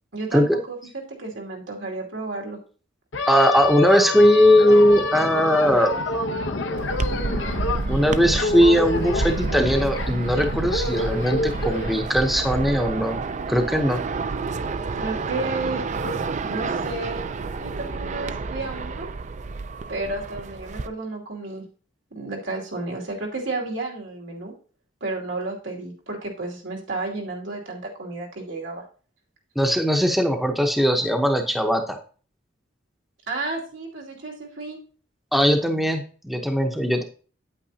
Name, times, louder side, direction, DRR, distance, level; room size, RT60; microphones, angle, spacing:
voice 1, 0.1-0.8 1.2-2.6 15.0-19.1 19.9-21.6 22.1-24.5 25.0-28.8 33.3-34.8, right 2 dB, 90° right, 0 dB, 2.6 m, -32 dB
sound 1, 3.1-11.9, left 3 dB, 80° left, 0.8 m, -27 dB
voice 2, 3.3-6.0 7.9-13.2 13.5-14.0 29.6-32.0 35.3-37.0, equal, ahead, 3 dB, 0.8 m, -19 dB
sound 2, 6.8-20.9, right 4 dB, 40° right, 0.4 m, -29 dB
9.1 x 8.6 x 2.8 m, 0.40 s
head